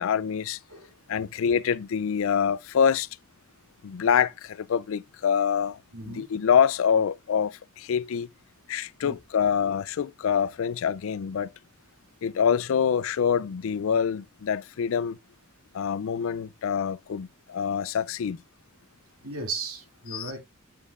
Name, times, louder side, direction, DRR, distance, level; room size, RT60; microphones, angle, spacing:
voice 1, 0.0-0.6 1.1-3.1 3.8-8.3 8.7-11.5 12.2-15.2 15.7-18.4 20.1-20.3, left 7 dB, 65° left, 0.4 m, -26 dB
voice 2, 5.9-6.3 9.0-9.2 19.2-20.4, right 3 dB, 85° right, 2.4 m, -36 dB
8.5 x 7.3 x 2.4 m
head